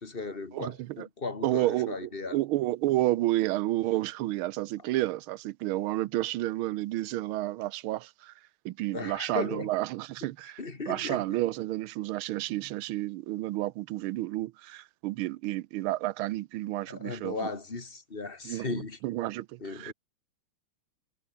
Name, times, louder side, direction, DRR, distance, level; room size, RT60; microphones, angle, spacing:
voice 1, 0.0-2.4 8.9-9.7 10.6-11.3 16.8-19.0 19.6-19.9, left 3 dB, 25° left, 2.6 m, -36 dB
voice 2, 0.5-1.1 1.4-8.3 8.6-10.6 10.9-17.5 18.4-19.9, right 16 dB, 85° right, 1.5 m, -31 dB
omnidirectional pair, 2.3 m